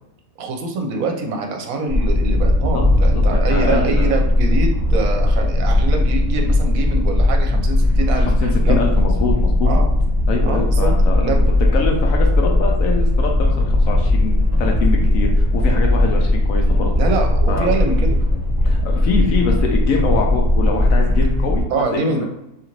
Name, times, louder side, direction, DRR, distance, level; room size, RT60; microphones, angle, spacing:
voice 1, 0.4-8.8 9.6-9.9 10.4-11.4 17.0-18.2 21.7-22.3, right 3 dB, 70° right, 2 dB, 1.0 m, -24 dB
sound 1, 1.9-21.6, left 1 dB, ahead, 0.9 m, -17 dB
voice 2, 2.6-4.2 8.2-9.7 10.3-11.4 11.7-16.9 17.5-17.7 18.6-21.6 21.9-22.2, left 4 dB, 70° left, 1 dB, 0.9 m, -24 dB
2.8 x 2.5 x 2.9 m, 0.85 s
omnidirectional pair, 1.6 m